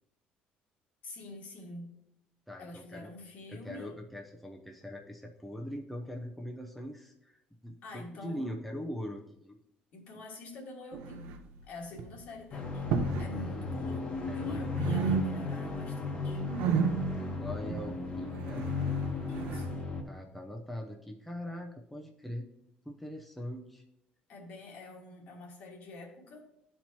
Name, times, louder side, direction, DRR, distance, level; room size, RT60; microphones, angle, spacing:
voice 1, 1.0-2.0 2.6-3.9 7.8-8.6 9.9-11.3 11.6-12.9 13.2-16.4 19.3-19.9 24.3-26.4, left 2 dB, 60° left, 0 dB, 1.8 m, -46 dB
voice 2, 2.5-3.1 3.5-9.6 13.3-13.8 14.3-14.6 17.1-18.7 20.1-22.5 22.8-23.8, equal, ahead, 0 dB, 0.6 m, -42 dB
sound 1, 10.9-11.6 11.9-12.2 12.8-13.4 13.6-14.5 14.7-15.7 16.0-19.7, right 6 dB, 85° right, 0.7 m, -33 dB
sound 2, 12.5-20.0, left 4 dB, 30° left, 1.2 m, -35 dB
12.0 x 4.5 x 2.9 m, 0.78 s
cardioid pair, 125°, 3 cm